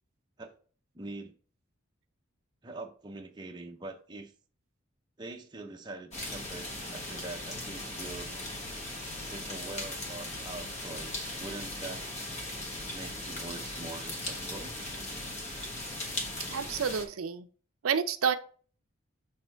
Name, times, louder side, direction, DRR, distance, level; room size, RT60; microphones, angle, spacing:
voice 1, 0.9-1.3 2.6-4.3 5.2-8.4 9.3-12.1 12.9-14.8, right 2 dB, 20° right, 0.6 m, -43 dB
sound 1, 6.1-17.0, left 1 dB, 35° left, 1.2 m, -38 dB
voice 2, 16.5-17.5 17.8-18.4, right 7 dB, 85° right, 0.5 m, -29 dB
6.6 x 3.5 x 4.4 m
head